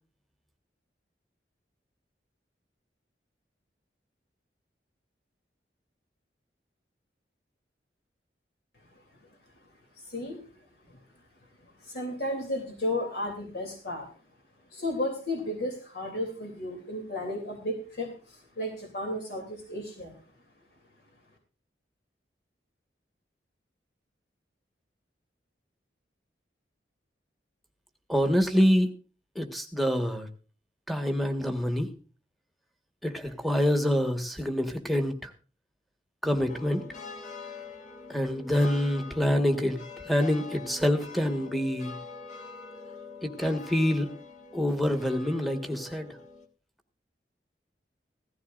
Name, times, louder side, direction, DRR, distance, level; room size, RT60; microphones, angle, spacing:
voice 1, 10.0-10.4 11.6-14.1 14.7-20.1, left 1 dB, 65° left, 2 dB, 2.9 m, -33 dB
voice 2, 28.1-28.9 29.3-30.3 30.9-31.9 33.0-35.3 36.2-36.8 38.1-42.0 43.2-44.1 44.5-46.1, equal, ahead, 5 dB, 1.4 m, -26 dB
sound 1, 36.5-46.5, left 4 dB, 45° left, 1.7 m, -44 dB
16.5 x 14.0 x 2.5 m, 0.36 s
head